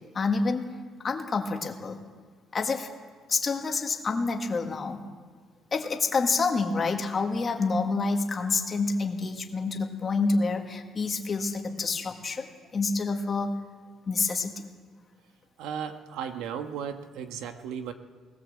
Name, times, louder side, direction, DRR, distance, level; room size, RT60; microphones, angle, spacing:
voice 1, 0.1-0.6 1.0-2.0 2.5-2.9 3.3-5.0 5.7-13.6 14.1-14.6, left 4 dB, 25° left, 3 dB, 1.8 m, -28 dB
voice 2, 15.6-17.9, right 8 dB, 90° right, 7 dB, 1.6 m, -35 dB
20.0 x 19.0 x 7.8 m, 1.6 s
cardioid pair, 175°, 0 cm